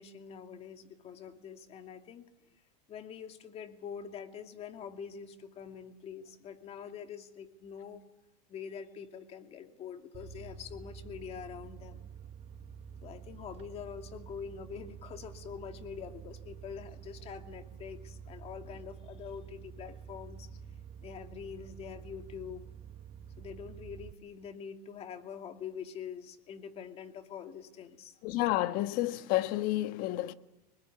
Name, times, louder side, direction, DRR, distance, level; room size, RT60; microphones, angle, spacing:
voice 1, 0.0-2.2 2.9-8.0 8.5-12.1 13.0-20.5 21.0-22.7 23.4-28.2, left 7 dB, 30° left, 2.6 m, -45 dB
sound 1, 10.1-24.1, right 7 dB, 30° right, 1.2 m, -48 dB
voice 2, 28.2-30.3, left 16 dB, 45° left, 1.4 m, -30 dB
26.5 x 20.5 x 9.8 m
supercardioid pair, 140°, 21 cm